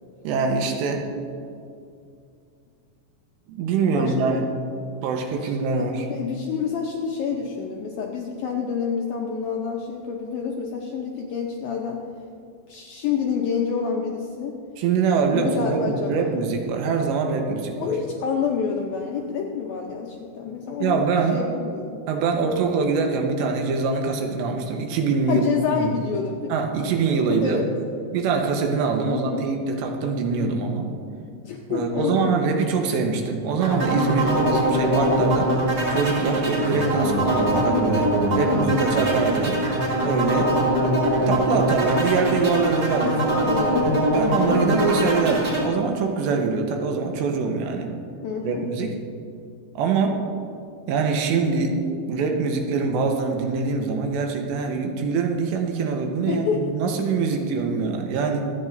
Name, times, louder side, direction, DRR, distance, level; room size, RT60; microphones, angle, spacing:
voice 1, 0.2-1.1 3.5-4.4 5.0-6.1 14.8-17.9 20.8-21.4 22.1-25.5 25.8-25.9 26.5-27.6 28.1-30.9 31.7-35.5 35.9-39.6 40.0-40.5 41.3-48.0 48.4-49.0 49.8-50.2 50.9-51.8 52.1-58.4, right 4 dB, 85° right, 3 dB, 3.2 m, -24 dB
voice 2, 3.9-4.4 5.4-12.1 12.7-14.6 15.3-16.3 17.8-22.0 25.3-26.5 27.3-27.7 29.0-29.5 31.5-32.3 38.3-38.9 40.4-40.7 43.5-44.1 48.2-48.7 56.3-56.7, left 6 dB, 80° left, 0 dB, 2.1 m, -28 dB
sound 1, 33.6-45.6, right 1 dB, 40° right, 3.3 m, -22 dB
25.5 x 9.1 x 2.6 m, 2.4 s
omnidirectional pair, 5.1 m